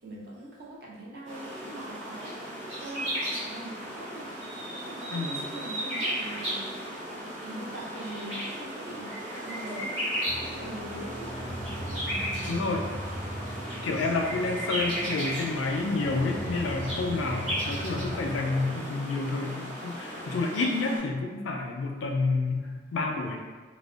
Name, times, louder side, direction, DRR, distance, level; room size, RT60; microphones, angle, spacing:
voice 1, 0.0-2.4 2.8-4.3 4.9-6.7 7.4-10.0 10.3-12.7, right 1 dB, 50° right, -5 dB, 0.6 m, -42 dB
sound 1, 1.2-21.0, equal, 80° right, 1.1 m, -35 dB
sound 2, 10.3-18.8, right 1 dB, 10° left, 0.4 m, -39 dB
voice 2, 12.5-12.9 13.8-23.4, left 3 dB, 75° left, 2 dB, 0.3 m, -29 dB
2.5 x 2.1 x 2.3 m, 1.4 s
head